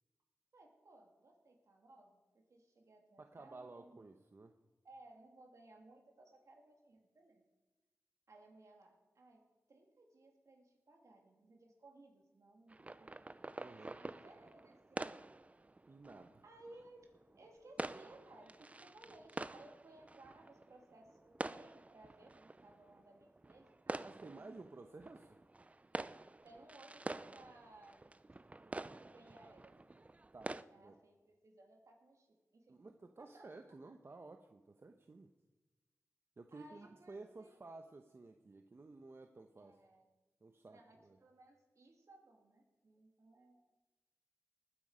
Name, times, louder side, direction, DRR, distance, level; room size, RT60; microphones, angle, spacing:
voice 1, 0.5-2.2 2.5-4.1 4.8-7.4 8.3-13.5 13.8-15.1 16.4-17.1 17.4-24.6 26.4-28.1 28.6-29.8 30.7-32.3 32.5-32.9 33.3-33.7 36.5-37.6 39.6-40.0 40.7-43.8, right 2 dB, 70° right, 1 dB, 2.8 m, -61 dB
voice 2, 3.2-4.5 13.6-14.0 15.9-16.4 24.0-25.4 30.3-31.0 32.7-35.3 36.4-39.8 40.4-41.2, right 3 dB, 45° right, 6 dB, 0.9 m, -54 dB
sound 1, 12.7-30.6, right 2 dB, 25° right, 0.4 m, -48 dB
19.5 x 9.6 x 5.0 m, 1.1 s
wide cardioid pair, 70°, 6 cm